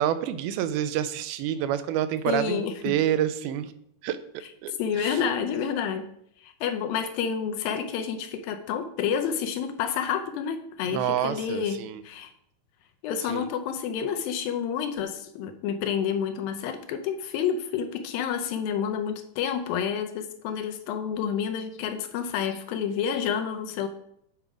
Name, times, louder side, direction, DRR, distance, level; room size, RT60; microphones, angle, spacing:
voice 1, 0.0-3.7 4.0-4.2 4.6-5.2 10.9-12.0 13.3-13.5, right 10 dB, 85° right, 13 dB, 2.4 m, -28 dB
voice 2, 2.3-2.9 4.7-6.1 6.4-11.8 12.0-12.3 13.0-23.9, left 7 dB, 80° left, 7 dB, 2.4 m, -29 dB
9.1 x 4.8 x 5.0 m, 0.72 s
omnidirectional pair, 4.4 m